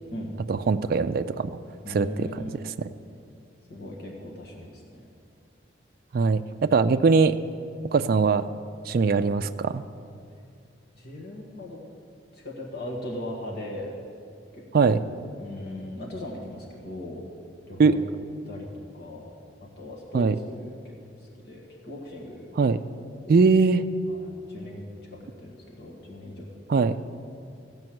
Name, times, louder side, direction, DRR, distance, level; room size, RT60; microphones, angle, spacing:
voice 1, 0.5-1.5 1.9-2.3 6.1-7.4 7.9-8.5 8.9-9.8 14.7-15.0 17.8-18.0 20.1-20.3 22.6-22.8 23.3-23.9 26.7-27.0, right 4 dB, 55° right, 9 dB, 0.3 m, -21 dB
voice 2, 1.8-2.7 3.7-5.0 11.0-11.8 12.3-14.0 14.5-15.1 15.4-17.2 17.7-18.0 18.4-18.7 18.9-19.3 19.8-22.5 23.2-23.4 24.0-24.8 25.1-26.5, left 1 dB, 60° left, -2 dB, 1.6 m, -39 dB
15.5 x 5.3 x 7.7 m, 2.4 s
head